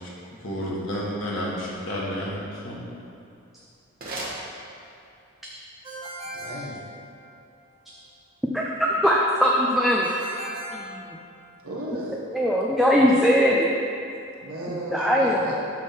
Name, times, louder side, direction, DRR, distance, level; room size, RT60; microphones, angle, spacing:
voice 1, 0.4-2.4 2.6-2.8, equal, 65° left, -5 dB, 1.6 m, -30 dB
sound 1, 3.2-5.2, right 1 dB, 40° right, 1.3 m, -38 dB
Ringtone, 5.8-7.5 10.0-11.7, right 1 dB, 25° right, 1.0 m, -38 dB
voice 2, 6.3-6.8 11.6-12.2 14.4-15.6, right 1 dB, 80° right, -4 dB, 1.4 m, -34 dB
voice 3, 8.5-10.1 10.7-10.9 12.3-13.7 14.9-15.5, equal, ahead, -4 dB, 0.4 m, -20 dB
8.5 x 3.6 x 5.7 m, 2.6 s
head